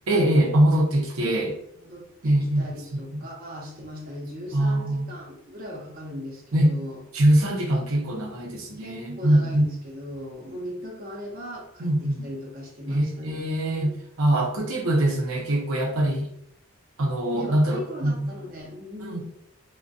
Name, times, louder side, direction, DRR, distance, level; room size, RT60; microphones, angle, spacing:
voice 1, 0.1-1.6 2.2-3.2 4.5-5.1 6.5-6.8 7.1-9.7 11.8-12.2 12.9-16.3 17.0-18.1 19.1-19.2, right 1 dB, 90° right, 0 dB, 0.6 m, -23 dB
voice 2, 1.7-7.0 8.8-13.9 17.3-19.2, equal, 45° right, -3 dB, 0.7 m, -38 dB
2.5 x 2.1 x 2.3 m, 0.73 s
head